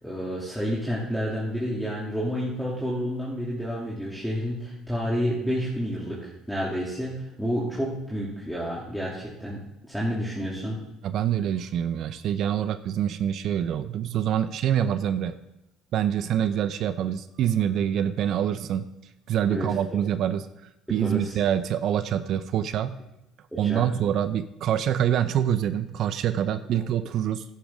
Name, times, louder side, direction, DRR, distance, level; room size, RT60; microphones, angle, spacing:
voice 1, 0.0-10.8 19.5-19.7 20.9-21.3 23.5-23.8, equal, ahead, -7 dB, 2.7 m, -30 dB
voice 2, 11.0-15.4 15.9-18.9 19.3-20.4 20.9-23.0 23.6-27.4, right 10 dB, 65° right, 12 dB, 0.6 m, -25 dB
11.5 x 10.5 x 3.6 m, 0.88 s
supercardioid pair, 80°, 0 cm